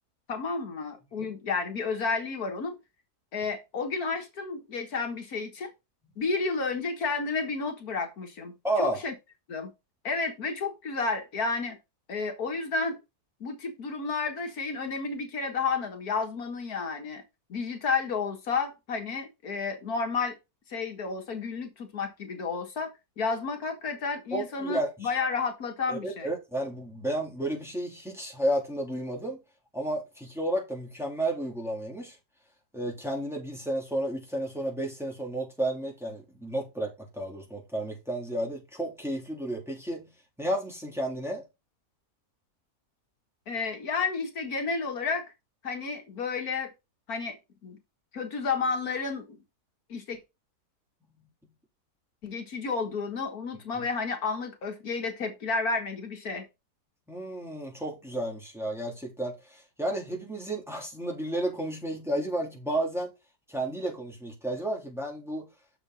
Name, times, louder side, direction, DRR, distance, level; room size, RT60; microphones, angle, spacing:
voice 1, 0.3-2.8 3.3-5.7 6.2-9.1 9.5-9.7 10.0-11.8 12.1-13.0 13.4-17.2 17.5-20.4 20.7-22.9 23.2-26.3 43.5-45.2 45.6-46.7 47.1-47.4 47.6-47.8 48.1-49.2 49.9-50.2 52.2-56.5, left 4 dB, 75° left, 2.0 m, -31 dB
voice 2, 8.6-9.0 24.3-25.1 25.9-29.4 29.7-32.2 32.7-40.1 40.4-41.4 53.8-53.9 57.1-63.1 63.5-65.5, right 1 dB, ahead, 3.3 m, -32 dB
7.0 x 6.8 x 4.0 m
omnidirectional pair, 1.6 m